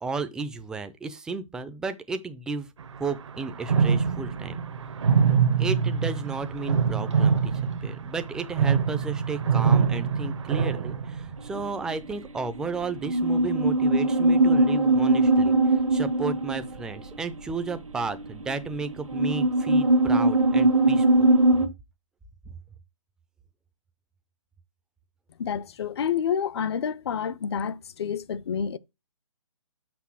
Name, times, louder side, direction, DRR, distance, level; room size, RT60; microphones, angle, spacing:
voice 1, 0.0-2.7 3.0-4.6 5.6-7.5 7.8-15.6 15.9-21.3 22.5-22.6, right 4 dB, 5° right, 0.4 m, -33 dB
sound 1, 2.8-3.0 3.3-11.5, right 6 dB, 65° right, 0.9 m, -24 dB
sound 2, 11.4-21.7, right 2 dB, 80° right, 1.5 m, -22 dB
voice 2, 25.4-28.8, left 7 dB, 55° left, 0.6 m, -29 dB
6.1 x 5.5 x 6.0 m
hypercardioid pair, 140°, 17 cm